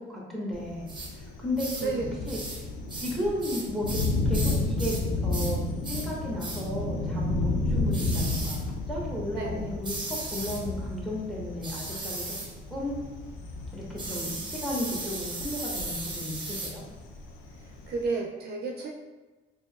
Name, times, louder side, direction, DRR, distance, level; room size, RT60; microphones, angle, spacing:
voice 1, 0.1-0.9 1.4-1.9 2.3-2.4 3.0-5.0 5.2-8.6 8.9-12.2 12.7-13.0 13.7-16.8, left 1 dB, ahead, -4 dB, 1.1 m, -34 dB
Thunder, 0.5-18.0, left 2 dB, 75° left, 0.5 m, -32 dB
sound 1, 0.9-1.1 1.6-1.9 2.3-2.6 2.9-5.1 5.3-5.6 5.8-6.1 6.4-6.7 7.9-8.6 9.8-10.6 11.6-12.5 14.0-16.8, right 2 dB, 25° right, 0.8 m, -36 dB
voice 2, 1.8-2.2 9.3-9.7 17.9-18.9, right 4 dB, 55° right, 0 dB, 0.4 m, -31 dB
4.2 x 2.7 x 2.3 m, 1.2 s
cardioid pair, 90°, 20 cm